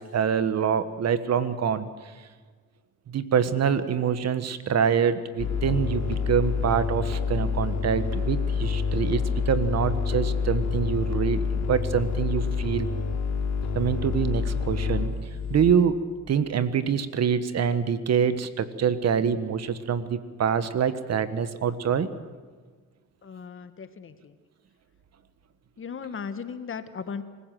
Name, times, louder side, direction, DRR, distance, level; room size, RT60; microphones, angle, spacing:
voice 1, 0.1-1.9 3.1-12.9 13.7-15.1 15.5-16.0 16.3-22.1, right 7 dB, 60° right, 12 dB, 1.4 m, -25 dB
sound 1, 5.4-15.7, left 5 dB, 60° left, 4.3 m, -27 dB
voice 2, 23.2-24.3 25.8-27.2, left 6 dB, 45° left, 10 dB, 1.5 m, -37 dB
25.5 x 15.5 x 7.7 m, 1.5 s
cardioid pair, 90°, 30 cm